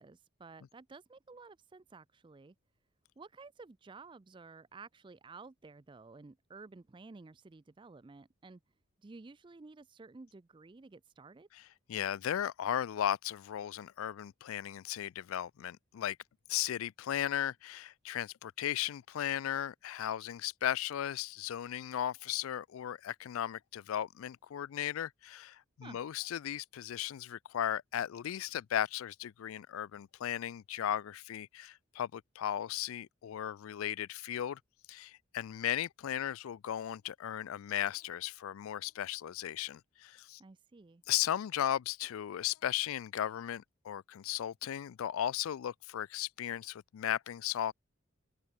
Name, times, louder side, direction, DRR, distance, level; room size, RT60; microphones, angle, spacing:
voice 1, 0.0-2.5 3.2-8.6 9.0-11.5 25.8-26.0 40.4-41.0, right 3 dB, 25° right, 0.4 m, -53 dB
voice 2, 11.9-16.2 16.5-34.6 34.9-40.4 41.1-47.7, left 11 dB, 80° left, 0.3 m, -36 dB
open air
head